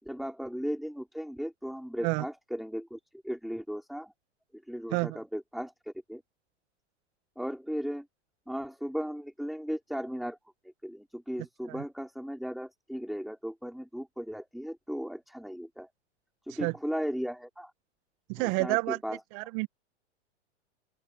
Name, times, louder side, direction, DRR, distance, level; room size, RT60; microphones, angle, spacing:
voice 1, 0.0-3.0 3.2-4.1 4.7-6.2 7.4-8.1 8.5-10.4 10.8-15.9 16.5-17.7 18.4-19.2, equal, ahead, 4.9 m, -36 dB
voice 2, 18.3-19.0 19.3-19.7, right 28 dB, 45° right, 1.5 m, -29 dB
open air
hypercardioid pair, 115°, 35 cm